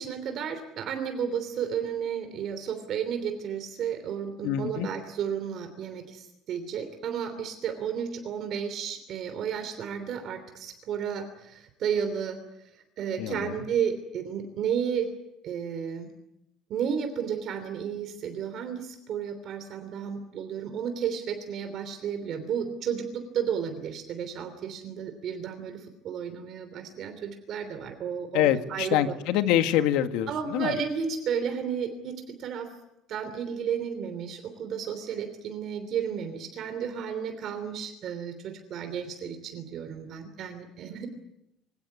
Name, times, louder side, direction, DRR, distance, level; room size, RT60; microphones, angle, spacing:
voice 1, 0.0-15.1 15.4-16.1 16.7-29.0 30.3-32.7 33.1-41.1, right 7 dB, 45° right, 8 dB, 3.1 m, -32 dB
voice 2, 4.4-4.9 13.2-13.6 28.3-30.8, left 11 dB, 90° left, 8 dB, 1.8 m, -25 dB
24.5 x 17.5 x 9.8 m, 0.87 s
cardioid pair, 175°, 0 cm